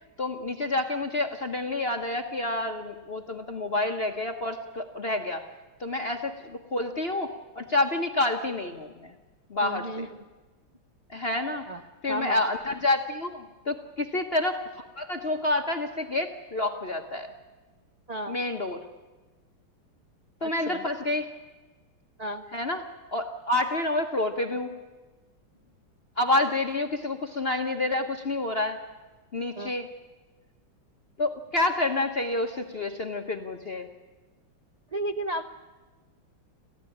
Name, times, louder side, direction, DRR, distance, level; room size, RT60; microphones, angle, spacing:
voice 1, 0.2-5.4 5.8-7.3 7.6-9.1 9.5-10.1 11.1-11.7 12.0-17.3 18.3-18.8 20.4-21.2 22.5-22.8 23.1-24.7 26.2-28.8 29.3-29.9 31.2-33.9, left 2 dB, 35° left, 4 dB, 1.1 m, -28 dB
voice 2, 9.6-10.2 11.7-11.8 12.1-12.4 18.1-18.4 20.4-20.8 22.2-22.4 29.5-29.7 34.9-35.5, right 1 dB, 50° right, 7 dB, 0.4 m, -33 dB
28.0 x 15.0 x 10.0 m, 1.3 s
omnidirectional pair, 2.3 m